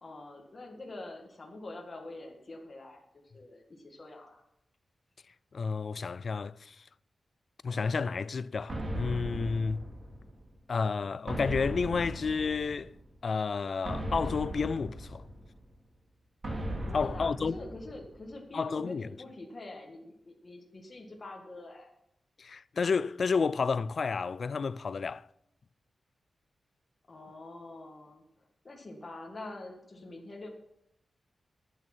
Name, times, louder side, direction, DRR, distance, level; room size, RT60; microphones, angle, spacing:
voice 1, 0.0-3.1 3.3-4.4 16.9-21.9 27.1-30.5, left 2 dB, 30° left, 1.9 m, -45 dB
voice 2, 5.5-6.9 7.6-9.8 10.7-12.9 13.2-15.3 16.9-17.6 18.5-19.1 22.4-25.3, left 5 dB, 50° left, 0.3 m, -31 dB
sound 1, 8.7-10.5 11.3-13.0 13.8-15.6 16.4-18.2, right 1 dB, 35° right, 2.8 m, -37 dB
12.5 x 8.9 x 6.1 m
wide cardioid pair, 140°, 0 cm